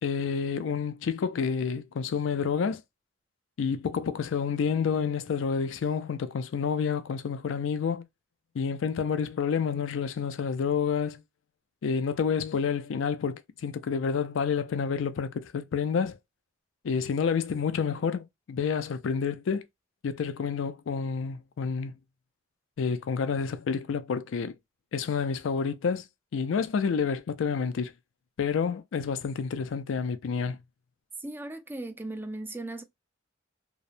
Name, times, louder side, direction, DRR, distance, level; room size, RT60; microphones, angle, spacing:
voice 1, 0.0-2.8 3.6-8.0 8.5-11.2 11.8-16.2 16.8-19.6 20.0-21.9 22.8-24.6 24.9-26.0 26.3-27.9 28.4-30.6, left 6 dB, 80° left, 0.4 m, -29 dB
voice 2, 31.2-32.8, right 2 dB, 10° right, 0.3 m, -37 dB
2.9 x 2.0 x 2.5 m
head